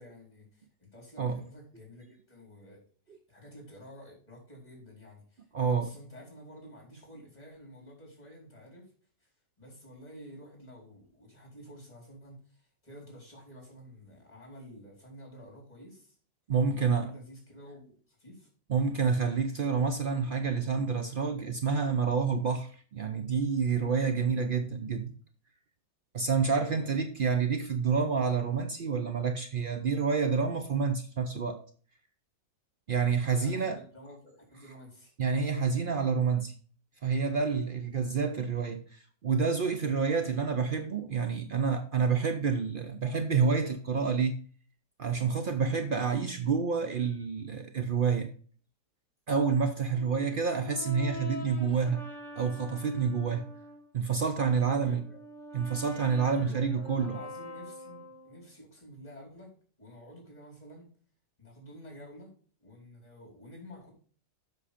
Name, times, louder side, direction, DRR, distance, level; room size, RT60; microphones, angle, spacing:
voice 1, 0.0-8.9 9.2-9.3 9.6-16.2 16.7-18.5 26.4-27.0 33.3-35.1 54.6-55.2 56.3-60.9 61.4-62.3 62.6-63.9, equal, 20° left, 4.4 m, -50 dB
voice 2, 5.5-5.9 16.5-17.1 18.7-25.1 26.1-31.6 32.9-33.8 35.2-36.5 37.0-44.4 45.0-48.3 49.3-52.0 52.4-53.4 53.9-55.0 55.5-57.1, right 5 dB, 85° right, 0.4 m, -28 dB
Brass instrument, 49.9-53.9 54.4-58.5, equal, 45° left, 1.8 m, -45 dB
7.6 x 6.3 x 5.0 m
omnidirectional pair, 1.8 m